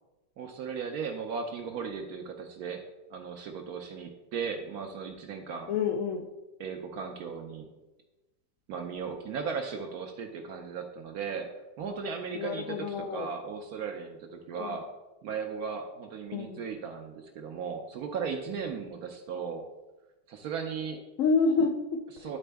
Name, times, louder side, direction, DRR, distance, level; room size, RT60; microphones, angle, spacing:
voice 1, 0.4-2.8 3.1-5.7 6.6-7.7 8.7-11.5 11.8-14.9 15.2-19.7 20.3-21.0 22.1-22.4, right 6 dB, 70° right, 4 dB, 0.9 m, -36 dB
voice 2, 5.7-6.2 12.4-13.3 14.6-14.7 16.3-16.6 21.2-22.0, left 4 dB, 90° left, 3 dB, 0.7 m, -28 dB
10.0 x 4.2 x 3.4 m, 1.1 s
omnidirectional pair, 2.0 m